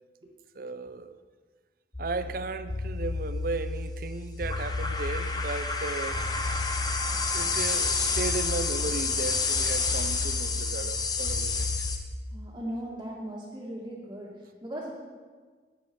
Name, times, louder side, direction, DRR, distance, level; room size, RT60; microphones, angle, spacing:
voice 1, 0.6-1.2 2.0-6.2 7.3-11.9, right 3 dB, 50° right, 0.6 m, -35 dB
sound 1, 1.9-12.0, left 4 dB, 20° left, 1.0 m, -29 dB
voice 2, 12.3-14.9, right 1 dB, 20° right, 2.1 m, -38 dB
13.0 x 9.4 x 5.4 m
head